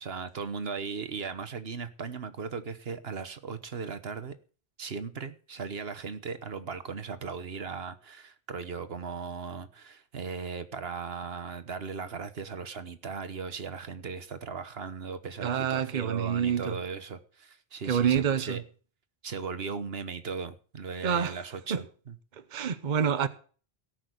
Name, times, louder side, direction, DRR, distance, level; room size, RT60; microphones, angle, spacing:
voice 1, 0.0-4.3 4.8-18.6 19.2-22.1, right 5 dB, 70° right, 1.4 m, -37 dB
voice 2, 15.4-16.8 17.8-18.6 21.0-21.4 21.7-21.8 22.3-23.3, right 8 dB, 50° right, 0.9 m, -27 dB
17.5 x 6.2 x 7.9 m
omnidirectional pair, 1.1 m